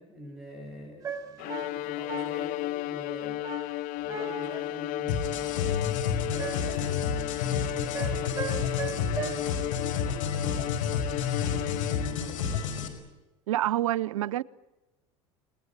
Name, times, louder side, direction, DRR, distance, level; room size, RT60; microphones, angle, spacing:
voice 1, 0.0-3.5 3.9-5.9 6.3-8.5 8.9-12.7, left 1 dB, ahead, 7.9 m, -44 dB
sound 1, 1.0-2.6 3.4-4.7 6.4-6.9 7.9-9.3, right 6 dB, 20° right, 5.8 m, -38 dB
Bowed string instrument, 1.4-12.4, left 17 dB, 55° left, 0.9 m, -34 dB
sound 2, 5.1-12.9, left 6 dB, 85° left, 4.9 m, -30 dB
voice 2, 13.5-14.4, right 13 dB, 80° right, 0.8 m, -27 dB
29.5 x 20.0 x 8.8 m
hypercardioid pair, 80°, 16 cm